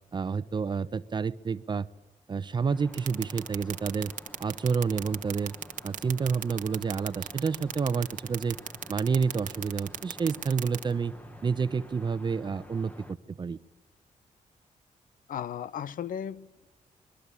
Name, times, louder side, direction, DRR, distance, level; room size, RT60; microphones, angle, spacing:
voice 1, 0.1-1.9 2.3-4.1 4.4-5.5 5.8-8.6 8.9-11.1 11.4-13.6, right 5 dB, 35° right, 14 dB, 0.9 m, -29 dB
sound 1, 2.7-13.1, left 1 dB, 10° left, 1.7 m, -50 dB
sound 2, 2.9-10.8, right 9 dB, 70° right, 1.2 m, -35 dB
voice 2, 15.3-16.7, left 9 dB, 80° left, 17 dB, 0.9 m, -36 dB
26.5 x 22.0 x 9.9 m, 1.2 s
wide cardioid pair, 130°, 14 cm